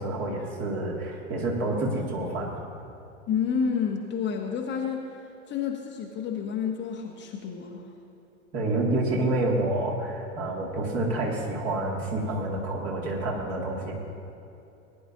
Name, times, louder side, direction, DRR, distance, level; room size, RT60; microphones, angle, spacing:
voice 1, 0.0-2.6 8.5-13.9, right 2 dB, 35° right, -2 dB, 2.4 m, -28 dB
voice 2, 3.3-5.1 5.5-7.9, left 6 dB, 25° left, 2 dB, 1.1 m, -29 dB
19.0 x 10.5 x 2.7 m, 2.8 s
figure-of-eight pair, 90°, 40 cm